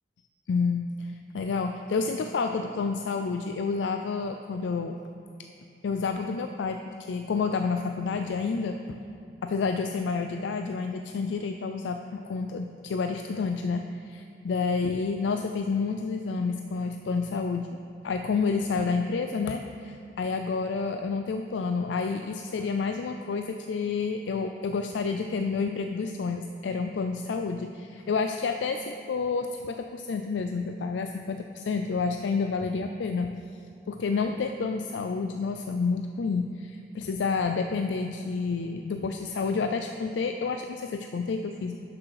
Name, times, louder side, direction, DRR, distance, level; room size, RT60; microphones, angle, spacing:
voice 1, 0.5-5.0 5.8-8.8 9.4-17.7 18.0-33.3 33.9-41.8, left 4 dB, 85° left, 6 dB, 0.4 m, -29 dB
11.5 x 6.2 x 4.9 m, 2.5 s
head